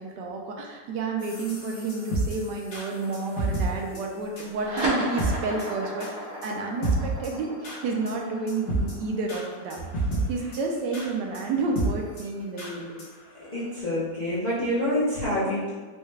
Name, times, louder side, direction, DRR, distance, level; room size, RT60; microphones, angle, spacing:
voice 1, 0.0-6.1 6.4-9.9 10.3-13.0, right 3 dB, 75° right, 1 dB, 1.2 m, -30 dB
sound 1, 1.2-3.7 4.0-4.1 4.4-4.5 4.8-4.9 5.2-5.3 5.6-5.7 6.0-6.1 6.4-6.5 6.8-7.3 7.6-7.8 8.1-8.2 8.5-8.9 9.3-9.4 9.7-10.2 10.5-10.6 10.9-11.1 11.3-11.4 11.8-11.9 12.2-12.3 12.6-12.7 13.0-13.1 13.5-13.6, right 3 dB, 85° left, 1.7 m, -29 dB
sound 2, 4.5-11.3, equal, 40° right, 0.8 m, -34 dB
voice 2, 13.5-15.7, left 1 dB, 45° left, -10 dB, 0.5 m, -26 dB
4.7 x 2.2 x 3.1 m, 1.4 s
omnidirectional pair, 2.0 m